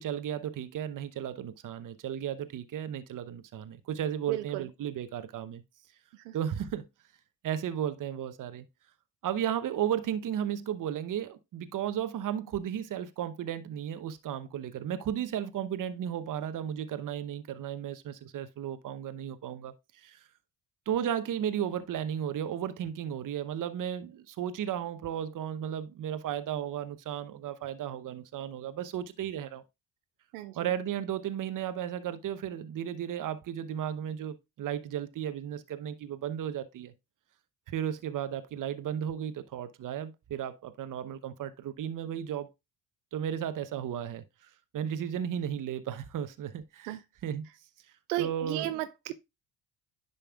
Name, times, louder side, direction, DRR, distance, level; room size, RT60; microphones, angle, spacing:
voice 1, 0.0-5.6 6.3-6.8 7.4-8.6 9.2-20.2 20.9-29.6 30.5-36.9 37.7-42.5 43.1-47.5 48.2-48.8, right 9 dB, 45° right, 0.9 m, -34 dB
voice 2, 4.3-4.7 6.1-6.4 30.3-30.6 46.9-47.0 48.1-49.1, right 15 dB, 80° right, 0.6 m, -33 dB
9.9 x 5.5 x 2.4 m
hypercardioid pair, 55°, 44 cm